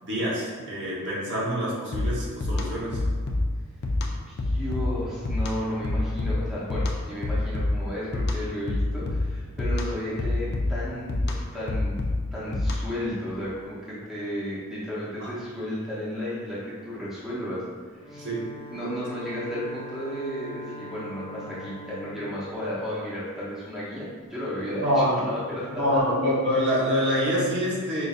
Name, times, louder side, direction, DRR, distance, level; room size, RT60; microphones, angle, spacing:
voice 1, 0.0-3.0 15.2-15.3 18.2-18.5 19.2-19.3 24.8-25.2 25.7-28.1, equal, 55° right, -7 dB, 1.0 m, -26 dB
sound 1, 1.9-13.1, left 2 dB, 50° left, 0.4 m, -28 dB
voice 2, 4.3-12.0 12.3-17.6 17.9-18.3 18.7-26.0, equal, ahead, -10 dB, 0.8 m, -33 dB
Bowed string instrument, 17.9-23.6, left 1 dB, 25° left, 1.0 m, -43 dB
5.1 x 2.5 x 2.4 m, 1.6 s
head